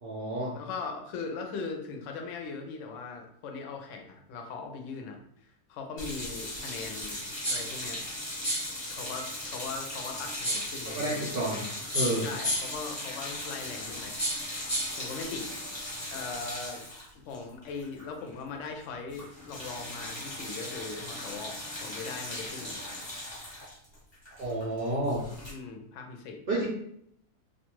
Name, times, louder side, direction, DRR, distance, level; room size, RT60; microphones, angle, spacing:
voice 1, 0.0-0.5 10.9-11.6 11.9-12.3 24.3-25.2 26.5-26.7, right 1 dB, 60° right, -4 dB, 0.6 m, -30 dB
voice 2, 0.5-7.2 7.5-8.0 8.9-11.2 12.2-14.1 15.0-15.5 16.1-16.8 17.3-22.9 25.4-26.7, left 4 dB, 65° left, 3 dB, 0.8 m, -40 dB
sound 1, 6.0-18.3 18.6-18.8 19.1-25.5, left 1 dB, 25° left, 0.6 m, -39 dB
sound 2, 7.4-7.8 8.4-8.8 10.4-10.8 11.9-12.8 14.2-15.0, equal, 15° right, 0.6 m, -31 dB
2.5 x 2.3 x 3.0 m, 0.71 s
omnidirectional pair, 1.6 m